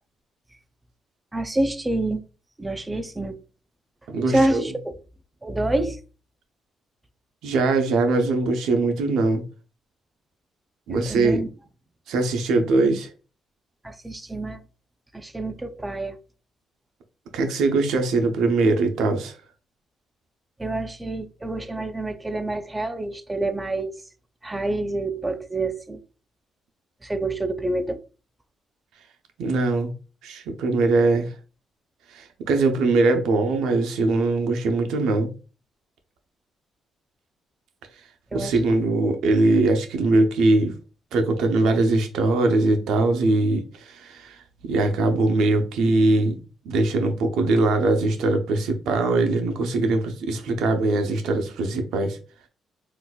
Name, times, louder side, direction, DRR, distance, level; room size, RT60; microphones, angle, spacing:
voice 1, 1.3-2.2 2.6-3.4 4.3-5.0 5.4-6.0 10.9-11.5 13.8-14.6 15.1-16.2 20.6-24.0 24.4-26.0 27.0-28.0 38.3-38.6, right 2 dB, 15° right, 0.5 m, -27 dB
voice 2, 4.1-4.7 7.4-9.4 10.9-11.4 12.1-13.1 17.3-19.4 29.4-29.9 30.2-31.4 32.1-35.3 38.3-40.8 41.1-44.4 44.6-46.4 46.6-52.2, right 2 dB, 85° right, 0.7 m, -21 dB
3.8 x 2.6 x 2.3 m
cardioid pair, 90°, 0 cm